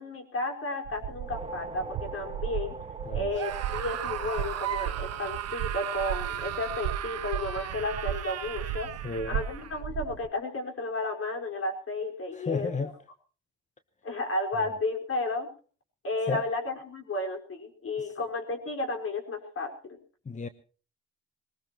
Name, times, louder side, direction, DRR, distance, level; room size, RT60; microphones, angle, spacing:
voice 1, 0.0-2.8 3.1-8.9 9.2-12.9 14.0-15.5 16.0-20.0, left 2 dB, 50° left, 4.9 m, -33 dB
sound 1, 0.8-10.3, right 11 dB, 85° right, 0.7 m, -36 dB
sound 2, 1.0-5.6, right 2 dB, 20° right, 1.5 m, -44 dB
Screaming, 3.3-9.8, right 11 dB, 55° right, 1.2 m, -36 dB
voice 2, 9.0-9.4 12.3-12.9 16.3-16.5 18.0-18.1 20.3-20.5, left 4 dB, 25° left, 0.9 m, -32 dB
21.5 x 19.5 x 3.0 m
cardioid pair, 90°, 30 cm